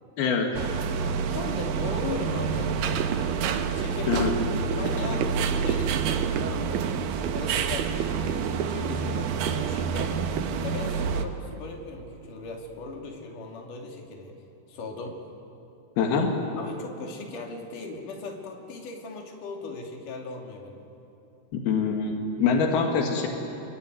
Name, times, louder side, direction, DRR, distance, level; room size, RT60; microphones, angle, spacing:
voice 1, 0.2-0.6 4.1-4.4 16.0-16.4 21.5-23.3, left 5 dB, 80° left, 2 dB, 3.8 m, -24 dB
sound 1, 0.5-11.2, right 6 dB, 75° right, 2.8 m, -28 dB
voice 2, 1.0-3.3 3.7-4.3 4.8-6.7 7.3-10.3 10.6-14.4 14.7-15.2 16.6-20.8, left 3 dB, 60° left, 1 dB, 4.1 m, -38 dB
sound 2, 2.8-12.2 12.5-12.6, right 9 dB, 90° right, 2.9 m, -34 dB
27.5 x 22.5 x 9.4 m, 2.9 s
omnidirectional pair, 4.3 m